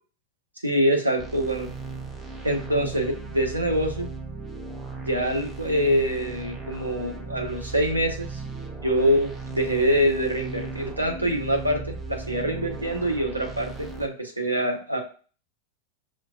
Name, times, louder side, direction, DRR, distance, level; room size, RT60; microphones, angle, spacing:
voice 1, 0.6-1.7 2.4-4.1 5.0-8.4 8.8-15.0, equal, 85° right, 3 dB, 0.8 m, -25 dB
sound 1, 1.2-14.1, right 3 dB, 15° right, 0.6 m, -37 dB
5.9 x 2.2 x 2.3 m, 0.38 s
figure-of-eight pair, 90°, 0 cm